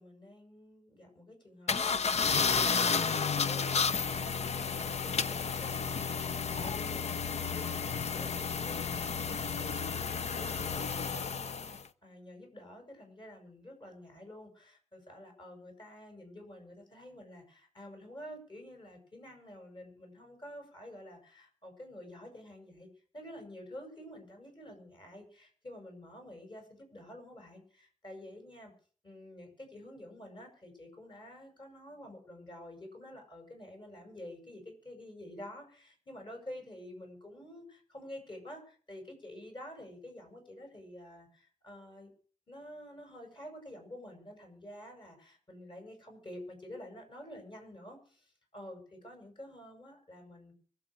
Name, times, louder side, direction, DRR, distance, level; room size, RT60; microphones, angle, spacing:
voice 1, 0.0-22.9 23.1-28.7 29.0-42.1 42.5-50.6, left 1 dB, 40° left, 4 dB, 7.4 m, -49 dB
sound 1, 1.7-11.8, left 5 dB, 60° left, 0.8 m, -32 dB
24.5 x 8.2 x 6.5 m, 0.44 s
wide cardioid pair, 95°, 12 cm